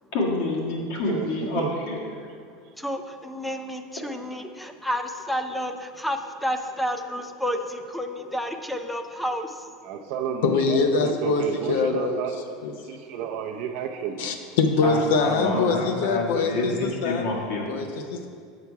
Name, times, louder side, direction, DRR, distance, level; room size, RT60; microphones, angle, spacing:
voice 1, 0.1-2.1 14.8-17.7, left 2 dB, 65° left, -2 dB, 1.6 m, -28 dB
voice 2, 1.1-1.7 9.8-14.4, right 8 dB, 60° right, 2 dB, 0.5 m, -32 dB
voice 3, 2.8-9.7 13.1-13.2, equal, ahead, 6 dB, 0.4 m, -30 dB
voice 4, 10.4-12.2 12.6-12.7 14.2-17.3 17.7-18.3, left 4 dB, 80° left, 6 dB, 0.6 m, -24 dB
7.6 x 5.6 x 4.6 m, 2.2 s
supercardioid pair, 155°, 0 cm